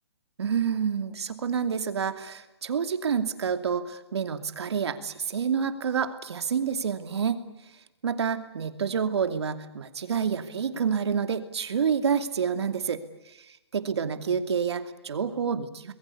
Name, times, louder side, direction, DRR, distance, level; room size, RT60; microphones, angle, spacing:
voice 1, 0.4-7.4 8.0-13.0 13.7-15.9, right 7 dB, 70° right, 8 dB, 2.7 m, -28 dB
27.5 x 21.0 x 8.5 m, 0.91 s
hypercardioid pair, 180°, 14 cm